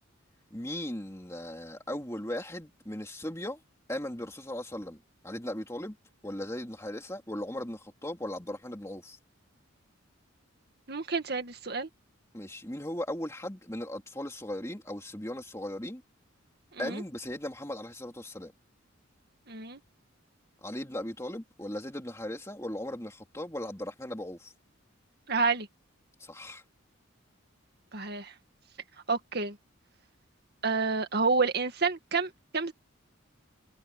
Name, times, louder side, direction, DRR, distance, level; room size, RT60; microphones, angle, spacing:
voice 1, 0.5-3.6 3.9-5.9 6.2-9.2 12.3-16.0 16.8-18.5 20.6-24.5 26.2-26.6, left 1 dB, 15° left, 2.9 m, -37 dB
voice 2, 10.9-11.9 16.7-17.0 19.5-19.8 25.3-25.7 27.9-28.3 29.1-29.6 30.6-32.7, right 4 dB, 50° right, 2.1 m, -29 dB
head